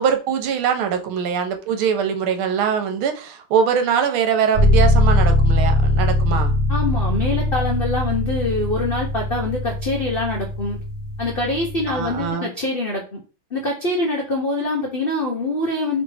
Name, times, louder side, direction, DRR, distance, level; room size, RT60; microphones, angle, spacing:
voice 1, 0.0-6.5 11.9-12.5, right 7 dB, 80° right, 1.6 m, -22 dB
sound 1, 4.5-12.3, left 1 dB, 55° right, 0.5 m, -20 dB
voice 2, 6.7-10.8 11.2-13.2 13.5-16.0, left 2 dB, 65° left, 0.5 m, -24 dB
3.2 x 3.1 x 4.7 m
omnidirectional pair, 2.3 m